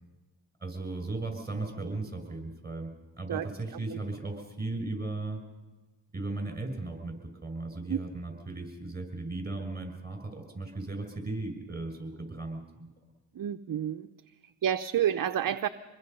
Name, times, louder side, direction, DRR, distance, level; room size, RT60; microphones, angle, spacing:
voice 1, 0.6-5.4 6.1-12.9, right 2 dB, 20° right, 4 dB, 6.0 m, -36 dB
voice 2, 13.3-14.1 14.4-15.7, right 10 dB, 50° right, 9 dB, 0.7 m, -29 dB
26.0 x 21.0 x 5.5 m, 1.2 s
cardioid pair, 85°, 43 cm